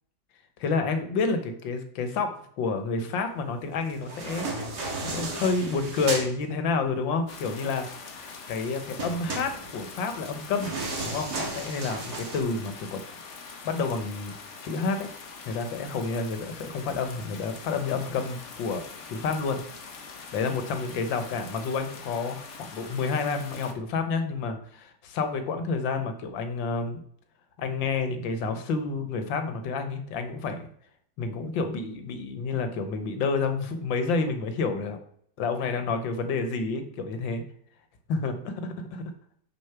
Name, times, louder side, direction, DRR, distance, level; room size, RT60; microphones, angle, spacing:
voice 1, 0.6-4.7 5.0-10.7 11.0-13.0 13.6-14.3 14.6-15.1 15.5-19.6 20.3-27.0 27.6-30.7 31.2-35.0 35.4-37.4 38.1-39.0, left 4 dB, 75° left, 7 dB, 1.7 m, -29 dB
sound 1, 3.9-6.3 9.0-12.4, right 3 dB, 55° right, 2.3 m, -34 dB
sound 2, 7.3-23.7, left 4 dB, 45° left, 1.1 m, -43 dB
6.5 x 5.3 x 5.8 m, 0.65 s
omnidirectional pair, 2.1 m